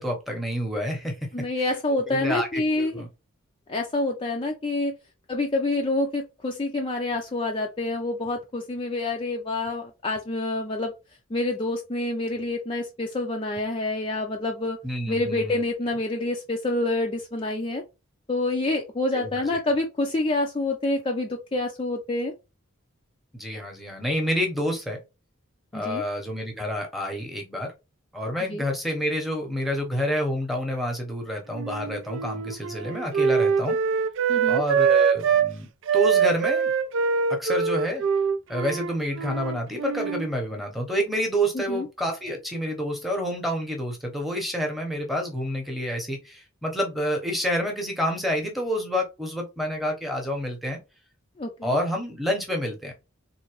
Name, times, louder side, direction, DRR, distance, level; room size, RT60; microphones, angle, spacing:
voice 1, 0.0-1.1 2.1-3.1 14.8-15.6 19.1-19.6 23.3-25.0 25.7-27.7 28.1-33.8 34.5-36.7 37.4-38.0 38.5-50.8 51.6-52.9, equal, ahead, 1 dB, 0.9 m, -28 dB
voice 2, 1.3-3.0 3.7-4.9 5.3-10.9 11.3-14.8 15.1-17.8 18.3-22.3 25.7-26.0 28.5-28.6 34.3-34.6 41.5-41.9 51.4-51.8, left 2 dB, 25° left, 2 dB, 0.4 m, -27 dB
Wind instrument woodwind instrument, 31.5-35.5 35.9-40.3, right 6 dB, 60° right, 0.4 m, -24 dB
3.8 x 2.7 x 3.0 m, 0.27 s
head